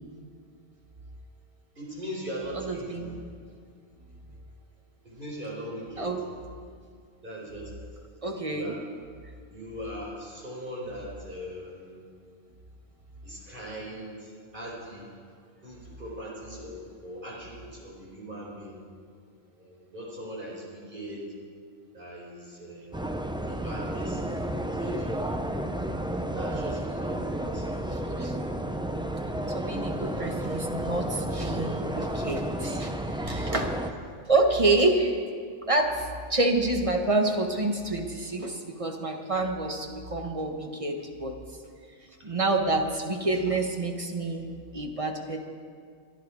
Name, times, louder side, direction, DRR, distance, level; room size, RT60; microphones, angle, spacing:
voice 1, 1.7-3.1 5.0-6.1 7.2-7.7 8.3-8.8 9.5-12.0 13.2-15.1 15.6-18.8 19.5-21.2 21.9-23.1 23.4-24.3 24.8-25.1 26.3-28.0, equal, 45° right, -5 dB, 4.6 m, -40 dB
voice 2, 2.5-3.2 6.0-6.2 8.2-8.7 15.9-16.0 27.9-28.4 29.5-33.7 34.3-35.2 35.7-35.9 36.3-41.4 42.2-45.4, right 2 dB, 30° right, 3 dB, 1.3 m, -28 dB
sound 1, 22.9-33.9, right 1 dB, 5° right, 0.4 m, -31 dB
23.0 x 11.0 x 4.7 m, 2.1 s
omnidirectional pair, 1.2 m